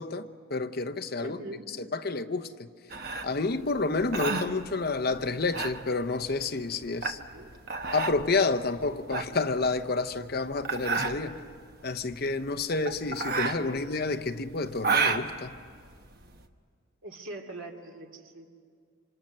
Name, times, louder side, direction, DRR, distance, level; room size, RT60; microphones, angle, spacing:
voice 1, 0.0-1.4 1.8-2.7 3.2-7.2 7.9-11.4 11.8-15.6, left 3 dB, 45° left, 0.8 m, -29 dB
voice 2, 1.2-1.7 7.3-7.5 13.6-13.8 17.0-18.5, right 2 dB, 75° right, 2.5 m, -42 dB
sound 1, 2.9-16.4, right 4 dB, 45° right, 1.2 m, -32 dB
26.5 x 25.5 x 6.6 m
head